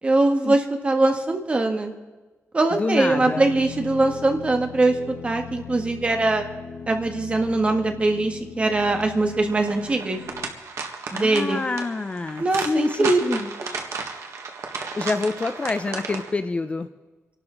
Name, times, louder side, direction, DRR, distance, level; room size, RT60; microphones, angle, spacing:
voice 1, 0.0-1.9 2.5-5.0 5.2-6.4 6.9-10.2 11.1-11.6 12.4-13.5, right 2 dB, 25° right, 4 dB, 1.5 m, -22 dB
voice 2, 2.7-3.4 11.1-13.4 15.0-16.9, left 3 dB, 25° left, 10 dB, 0.5 m, -27 dB
sound 1, 3.1-10.5, left 8 dB, 75° left, 1.2 m, -39 dB
sound 2, 8.9-16.3, right 5 dB, 80° right, 1.7 m, -34 dB
28.0 x 12.0 x 3.9 m, 1.2 s
wide cardioid pair, 160°, 5 cm